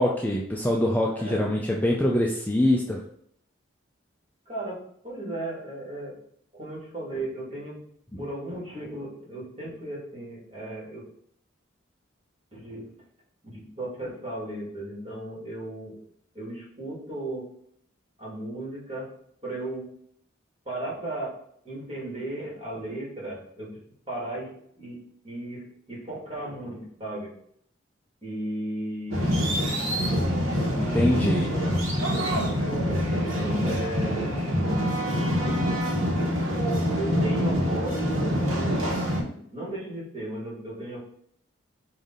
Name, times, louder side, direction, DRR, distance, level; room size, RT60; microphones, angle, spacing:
voice 1, 0.0-3.0 30.8-31.5, left 1 dB, 10° left, -1 dB, 0.4 m, -24 dB
voice 2, 4.5-4.8 5.0-6.2 6.5-7.8 8.2-11.0 12.5-12.9 13.4-16.0 16.3-17.4 18.2-19.1 19.4-19.8 20.7-21.3 21.6-23.7 24.1-24.5 24.8-25.0 25.2-27.3 28.2-30.2 30.7-31.7 32.0-34.4 37.0-39.0 39.5-41.0, right 1 dB, 30° right, -6 dB, 1.9 m, -35 dB
sound 1, 29.1-39.2, equal, 90° right, 1.2 m, -25 dB
5.1 x 2.7 x 3.7 m, 0.67 s
head